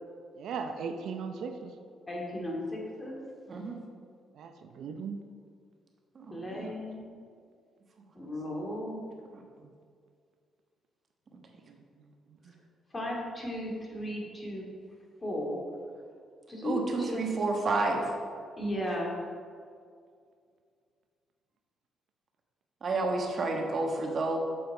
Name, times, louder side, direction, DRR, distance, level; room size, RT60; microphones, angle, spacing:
voice 1, 0.4-1.7 4.4-5.2 6.5-6.7, right 5 dB, 75° right, 6 dB, 0.7 m, -37 dB
voice 2, 2.1-3.2 6.3-7.1 8.1-9.0 12.9-14.7 15.2-15.6 16.5-16.8 17.1-17.3 18.6-19.2, equal, 25° left, -2 dB, 2.5 m, -35 dB
voice 3, 16.6-18.1 22.8-24.4, right 3 dB, 45° right, 2 dB, 1.4 m, -30 dB
7.6 x 7.3 x 4.9 m, 2.2 s
cardioid pair, 90°, 0 cm